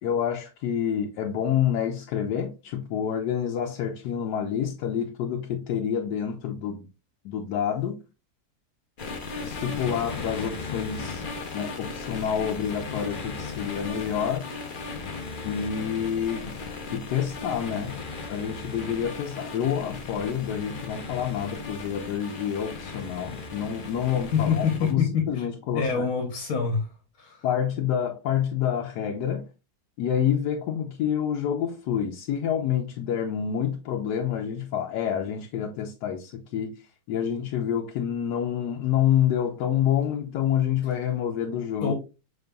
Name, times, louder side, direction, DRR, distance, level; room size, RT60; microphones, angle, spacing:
voice 1, 0.0-6.9 7.2-8.0 9.4-11.2 11.5-14.5 15.4-16.5 16.9-17.9 18.3-26.0 27.4-29.5 30.0-36.8 37.1-41.9, left 9 dB, 90° left, 1.2 m, -28 dB
sound 1, 9.0-24.9, left 3 dB, 45° left, 0.7 m, -36 dB
voice 2, 24.3-25.4 25.7-26.9 27.2-27.5 41.8-41.9, left 6 dB, 65° left, 1.4 m, -26 dB
5.2 x 4.2 x 2.2 m
omnidirectional pair, 1.7 m